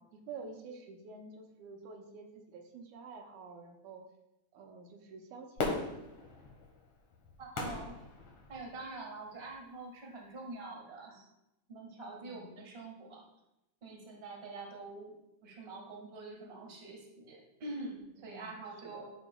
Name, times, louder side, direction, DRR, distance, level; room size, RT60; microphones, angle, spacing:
voice 1, 0.0-4.0 4.5-5.9 12.2-12.5 18.2-18.5 18.8-19.1, right 4 dB, 80° right, 2 dB, 2.2 m, -49 dB
Fireworks, 5.6-8.9 9.5-9.6, left 3 dB, 60° left, 1.9 m, -38 dB
voice 2, 7.4-7.9 8.5-11.2 11.7-13.2 13.8-15.1 15.4-19.1, right 3 dB, 30° right, -1 dB, 1.4 m, -45 dB
12.0 x 5.2 x 2.2 m, 0.90 s
omnidirectional pair, 3.4 m